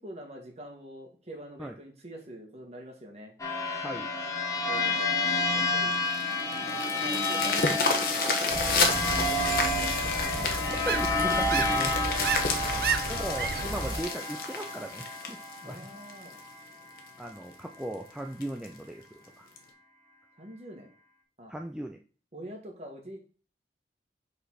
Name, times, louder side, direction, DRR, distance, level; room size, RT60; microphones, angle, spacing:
voice 1, 0.0-3.3 4.6-5.1 5.5-5.9 6.5-10.8 12.1-12.9 15.7-16.4 20.4-20.9 21.4-21.5 22.3-23.2, right 1 dB, 35° right, 1 dB, 1.8 m, -45 dB
sound 1, 3.4-16.6, left 2 dB, 20° left, 1.1 m, -30 dB
voice 2, 3.8-4.2 10.7-12.0 13.1-15.9 17.2-19.5 21.5-22.0, right 1 dB, 5° right, 3 dB, 0.4 m, -38 dB
sound 2, 5.9-16.4 17.0-17.1 17.5-17.6 17.9-18.0 18.4-18.7 19.6-19.7, left 4 dB, 55° left, 1.1 m, -31 dB
sound 3, 8.5-14.0, right 4 dB, 55° right, 0.8 m, -32 dB
5.5 x 4.2 x 5.6 m, 0.39 s
head